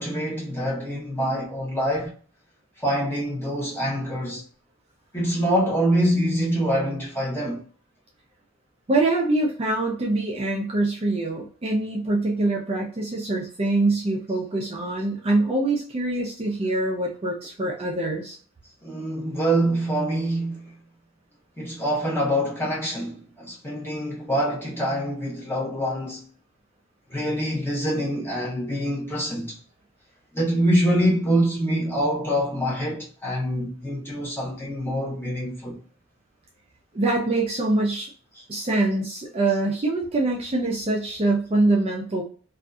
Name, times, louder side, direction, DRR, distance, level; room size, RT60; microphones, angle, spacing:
voice 1, 0.0-2.1 2.8-4.4 5.1-7.6 18.8-20.7 21.6-26.2 27.1-29.6 30.3-35.8 39.5-39.6, equal, 10° left, 0.8 m, -25 dB
voice 2, 8.9-18.4 36.9-38.1 38.5-42.2, right 2 dB, 25° right, 0.4 m, -24 dB
2.6 x 2.4 x 2.2 m
head